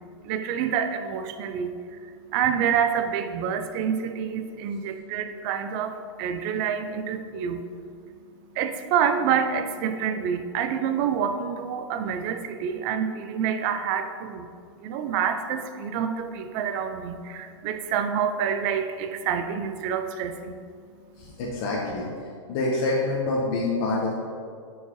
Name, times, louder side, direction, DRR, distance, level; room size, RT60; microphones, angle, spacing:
voice 1, 0.2-21.4 21.9-22.0, right 7 dB, 40° right, 8 dB, 0.5 m, -28 dB
voice 2, 21.2-22.1 22.5-24.1, left 2 dB, 45° left, -5 dB, 1.2 m, -26 dB
9.8 x 4.6 x 3.1 m, 2.3 s
hypercardioid pair, 120°, 15 cm